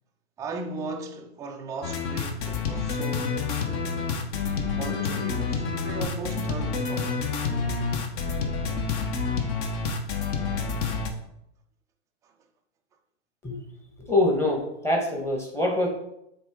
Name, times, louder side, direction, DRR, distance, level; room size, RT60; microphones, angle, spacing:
voice 1, 0.4-3.4 4.7-7.2 12.2-12.3, right 3 dB, 10° right, 0.4 m, -37 dB
sound 1, 1.8-11.1, left 5 dB, 35° left, 1.0 m, -28 dB
voice 2, 14.1-15.9, left 1 dB, 5° left, 1.3 m, -24 dB
7.0 x 3.9 x 3.7 m
hypercardioid pair, 125°, 34 cm